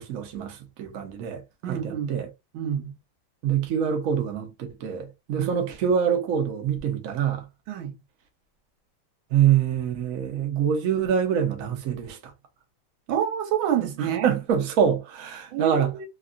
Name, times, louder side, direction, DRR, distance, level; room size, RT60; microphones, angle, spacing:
voice 1, 0.0-1.4 1.7-2.3 3.4-7.4 9.3-12.3 14.2-16.1, right 8 dB, 60° right, 0.9 m, -25 dB
voice 2, 1.6-2.2 2.5-2.9 5.3-5.5 7.7-8.0 13.1-14.3 15.5-16.1, right 9 dB, 80° right, 1.5 m, -28 dB
3.5 x 2.4 x 2.4 m
omnidirectional pair, 2.2 m